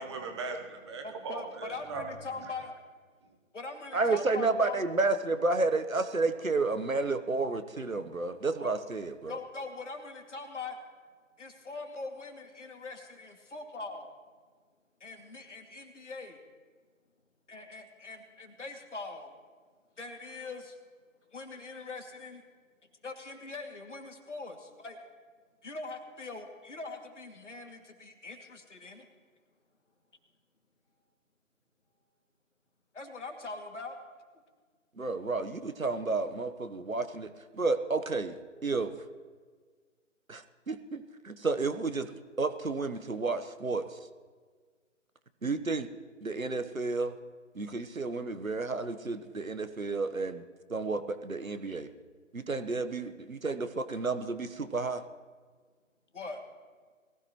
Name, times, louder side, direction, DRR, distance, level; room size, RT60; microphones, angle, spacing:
voice 1, 0.0-2.0, right 4 dB, 20° right, 4 dB, 1.2 m, -39 dB
voice 2, 1.0-2.8 3.5-4.8 8.6-8.7 9.3-10.8 11.4-14.1 15.0-16.4 17.5-19.3 20.0-20.8 21.3-22.4 23.0-25.0 25.6-29.1 32.9-34.0 56.1-56.4, left 3 dB, 60° left, 4 dB, 2.5 m, -42 dB
voice 3, 3.9-9.4 35.0-38.9 40.3-42.1 42.4-43.8 45.4-45.9 46.2-47.1 47.5-50.4 50.7-51.9 52.3-55.0, right 3 dB, 85° right, 10 dB, 1.3 m, -31 dB
22.0 x 16.0 x 3.1 m, 1.5 s
figure-of-eight pair, 140°, 40 cm